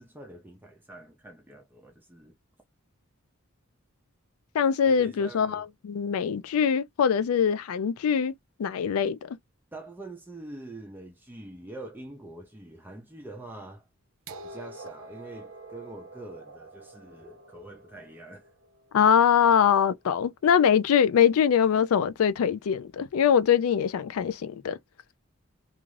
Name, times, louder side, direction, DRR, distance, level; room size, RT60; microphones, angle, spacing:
voice 1, 0.0-2.4 4.8-5.6 9.7-13.9 14.4-18.5, right 2 dB, 10° right, 0.4 m, -45 dB
voice 2, 4.5-8.3 8.6-9.4 18.9-24.8, left 7 dB, 80° left, 0.3 m, -23 dB
sound 1, 14.3-20.1 21.2-21.3, right 2 dB, 70° right, 0.5 m, -47 dB
2.4 x 2.4 x 3.1 m
head